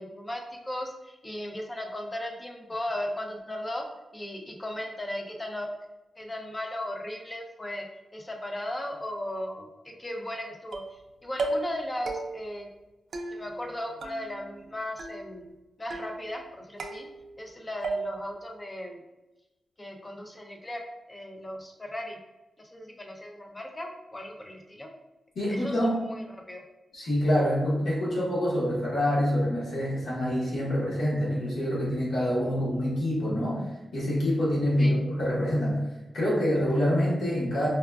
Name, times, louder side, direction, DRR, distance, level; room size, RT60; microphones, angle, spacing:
voice 1, 0.0-3.8 4.1-5.7 6.2-7.9 8.1-12.7 13.3-15.5 15.8-17.1 17.4-19.0 19.8-20.8 21.1-22.2 22.6-24.9 25.5-26.6 34.8-34.9, left 1 dB, 15° left, 2 dB, 0.4 m, -36 dB
sound 1, 10.7-11.0 11.4-11.8 12.1-12.6 13.1-13.7 14.0-14.7 15.0-15.5 15.9-16.4 16.8-17.5 17.8-18.4, right 3 dB, 65° right, 0.3 m, -35 dB
voice 2, 25.3-26.0 26.9-33.6 33.9-35.8 36.1-37.7, equal, 90° left, -7 dB, 1.1 m, -26 dB
4.6 x 2.2 x 2.3 m, 1.0 s
wide cardioid pair, 155°, 0 cm